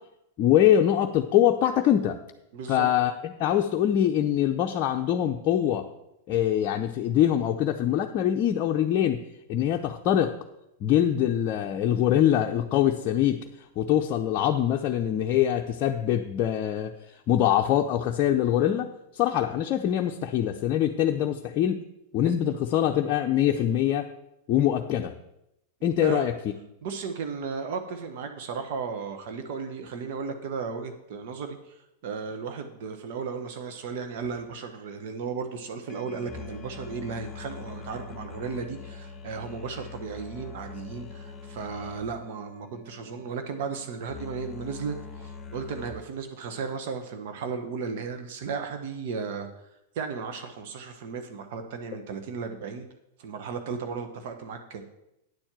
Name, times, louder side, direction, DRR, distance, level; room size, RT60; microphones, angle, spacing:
voice 1, 0.4-2.2 2.7-5.9 6.3-9.2 9.5-10.3 10.8-13.4 13.8-16.9 17.3-21.8 22.1-24.1 24.5-25.1 25.8-26.3, left 11 dB, 45° left, 3 dB, 0.6 m, -23 dB
voice 2, 2.5-2.9 26.0-26.2 26.8-49.5 49.9-52.9 53.2-54.8, right 5 dB, 60° right, 6 dB, 1.0 m, -35 dB
sound 1, 34.2-34.4 35.9-45.9, left 5 dB, 15° left, 1.5 m, -43 dB
9.5 x 4.5 x 7.4 m, 0.86 s
hypercardioid pair, 100°, 0 cm